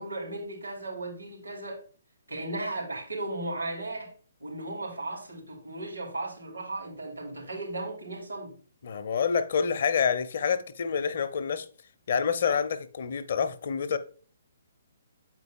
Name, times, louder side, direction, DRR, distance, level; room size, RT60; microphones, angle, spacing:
voice 1, 0.0-1.8 2.3-4.1 4.4-8.6, right 2 dB, 80° right, 3.3 m, -36 dB
voice 2, 8.8-11.7 12.1-14.0, left 6 dB, 55° left, 0.6 m, -27 dB
7.9 x 4.7 x 3.7 m
figure-of-eight pair, 130°, 0 cm